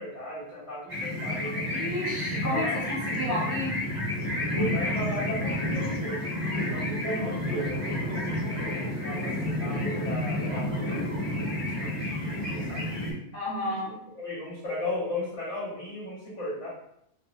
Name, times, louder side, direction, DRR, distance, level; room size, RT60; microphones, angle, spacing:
voice 1, 0.0-1.8 2.5-2.9 4.5-13.2 13.7-13.8 14.2-16.7, left 1 dB, 85° left, -7 dB, 1.7 m, -36 dB
sound 1, 0.9-13.1, left 1 dB, 30° right, 1.1 m, -30 dB
voice 2, 1.7-2.6 2.9-3.7 6.8-7.1 13.3-13.9, left 1 dB, 10° left, -9 dB, 1.5 m, -31 dB
3.2 x 2.5 x 3.0 m, 0.74 s
omnidirectional pair, 1.2 m